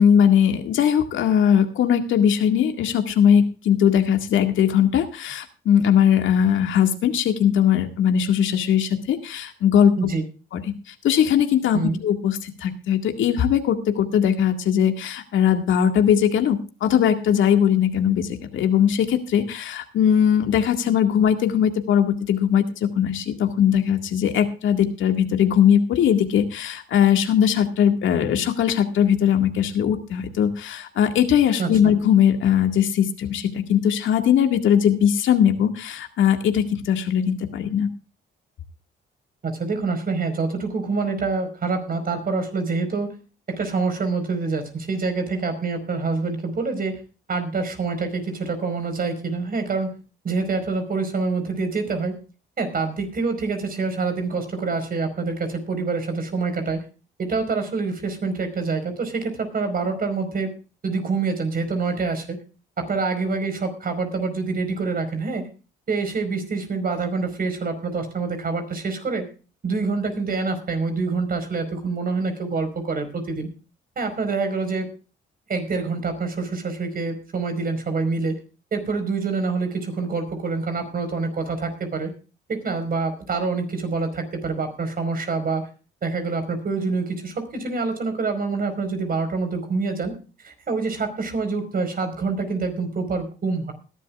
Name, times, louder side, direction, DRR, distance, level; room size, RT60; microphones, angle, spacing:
voice 1, 0.0-10.1 10.9-22.6 23.0-37.9, left 9 dB, 75° left, 5 dB, 2.0 m, -20 dB
voice 2, 31.6-31.9 39.4-43.1 43.5-47.0 47.3-49.9 50.2-52.2 52.6-56.8 57.2-60.5 60.8-62.4 62.8-65.5 65.9-69.3 69.6-73.5 74.0-74.9 75.5-78.4 78.7-82.1 82.5-85.7 86.0-90.2 90.4-93.7, right 4 dB, 45° right, 8 dB, 4.8 m, -26 dB
20.5 x 12.0 x 2.4 m, 0.34 s
cardioid pair, 90°, 20 cm